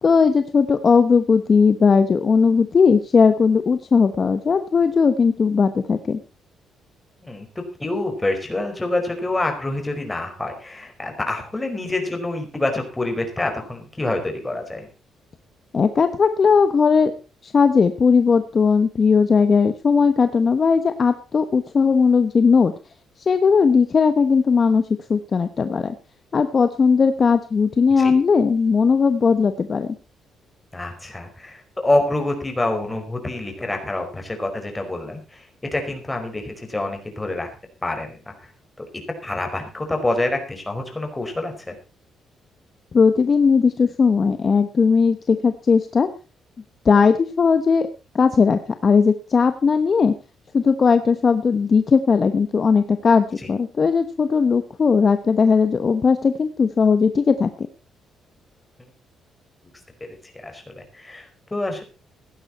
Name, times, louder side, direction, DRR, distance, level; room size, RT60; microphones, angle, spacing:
voice 1, 0.0-6.2 15.7-17.1 17.4-22.7 23.2-24.8 25.1-25.9 26.3-29.9 42.9-46.1 46.8-47.9 48.1-50.1 50.5-57.5, left 5 dB, 40° left, 10 dB, 1.1 m, -18 dB
voice 2, 7.2-14.9 27.9-28.1 30.7-37.5 37.8-38.5 38.8-38.9 39.2-41.8 60.0-61.8, left 2 dB, 15° left, 4 dB, 5.0 m, -27 dB
16.5 x 11.5 x 4.3 m, 0.33 s
cardioid pair, 90°, 0 cm